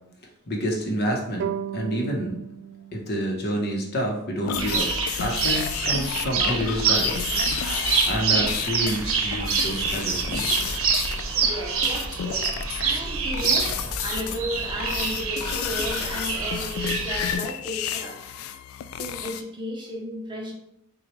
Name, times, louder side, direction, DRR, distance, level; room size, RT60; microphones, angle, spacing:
voice 1, 0.5-1.5 1.7-2.4 2.9-4.9 5.2-7.3 7.8-10.5, equal, 50° left, 0 dB, 0.9 m, -28 dB
sound 1, 1.4-4.7, right 9 dB, 60° right, 0.3 m, -36 dB
sound 2, 4.4-11.5 11.8-13.0 13.3-14.4 14.8-19.4, left 10 dB, 80° left, 0.3 m, -31 dB
sound 3, 4.6-17.4, right 5 dB, 75° right, 0.7 m, -26 dB
voice 2, 11.4-18.2 19.0-20.5, equal, 20° right, -1 dB, 0.8 m, -34 dB
6.1 x 2.4 x 3.1 m, 0.79 s
head